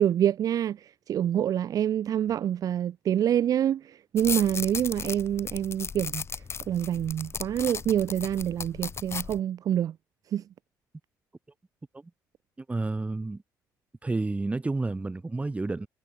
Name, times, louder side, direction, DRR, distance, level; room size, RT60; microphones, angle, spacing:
voice 1, 0.0-6.2 6.7-9.9 10.3-10.4, right 10 dB, 55° right, 0.6 m, -26 dB
sound 1, 4.2-9.4, left 6 dB, 35° left, 1.9 m, -36 dB
voice 2, 12.6-13.4 14.0-15.9, right 3 dB, 20° right, 3.5 m, -30 dB
cardioid pair, 85°, 7 cm